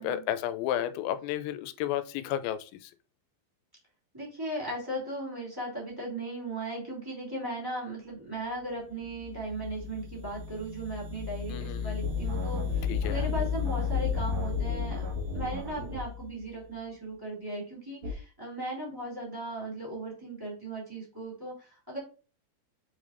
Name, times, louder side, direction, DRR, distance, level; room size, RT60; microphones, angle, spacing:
voice 1, 0.0-2.9 11.5-12.0 12.9-13.2, left 11 dB, 85° left, 2.9 m, -32 dB
voice 2, 4.1-22.0, right 1 dB, 5° right, 2.0 m, -37 dB
sound 1, 9.0-16.5, left 8 dB, 85° right, 1.4 m, -34 dB
sound 2, 12.0-16.0 18.0-18.1, left 1 dB, 50° right, 2.5 m, -35 dB
7.7 x 5.0 x 2.6 m
omnidirectional pair, 5.2 m